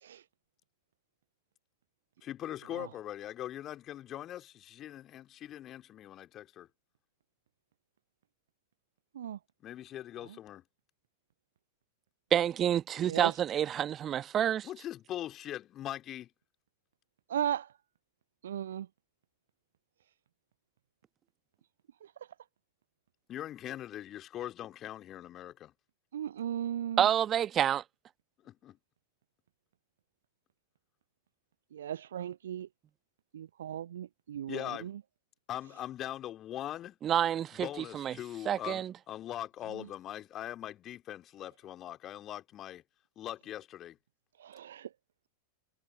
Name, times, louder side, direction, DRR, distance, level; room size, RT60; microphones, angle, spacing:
voice 1, 2.2-6.7 9.6-10.6 14.6-16.3 23.3-25.7 28.4-28.8 34.5-34.9 35.5-37.0 37.5-42.8 43.2-44.0, left 12 dB, 30° left, 2.5 m, -41 dB
voice 2, 12.3-14.7 27.0-27.8 37.0-37.7 37.9-38.1 38.4-38.9, right 10 dB, 25° right, 1.3 m, -28 dB
voice 3, 17.3-17.7 18.4-18.9 26.1-27.1 31.7-32.7 33.3-34.9 44.4-44.9, right 10 dB, 65° right, 0.5 m, -36 dB
figure-of-eight pair, 90°, 0 cm